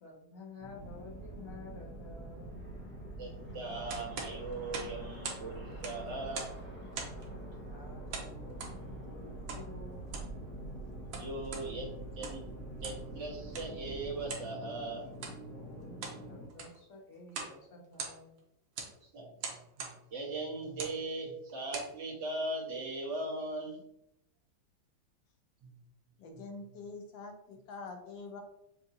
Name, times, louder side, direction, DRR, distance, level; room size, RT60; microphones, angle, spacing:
voice 1, 0.0-2.5 7.3-7.4 7.7-10.0 15.5-16.0 16.3-18.4, left 2 dB, 55° left, -1 dB, 1.1 m, -51 dB
sound 1, 0.6-16.5, left 1 dB, 15° left, 0.5 m, -47 dB
sound 2, 0.7-14.3, right 4 dB, 40° right, 1.6 m, -48 dB
voice 2, 3.2-6.5 11.2-11.9 12.2-12.5 12.8-15.1 19.0-23.8 25.6-25.8 26.3-26.4, right 2 dB, 65° right, -4 dB, 1.8 m, -39 dB
sound 3, 3.9-5.5 5.7-6.6 6.9-7.3 8.1-8.8 9.5-9.7 10.0-10.3 10.9-11.7 12.1-12.5 12.8-13.1 13.5-13.7 14.3-14.5 15.1-15.4 15.8-16.2 16.5-16.8 17.3-17.6 17.8-18.4 18.8-18.9 19.4-20.0 20.7-21.0 21.5-21.9, right 5 dB, 85° right, 1.6 m, -41 dB
voice 3, 26.2-28.4, left 3 dB, 80° left, 3 dB, 1.5 m, -45 dB
6.1 x 2.6 x 2.7 m, 0.79 s
omnidirectional pair, 2.1 m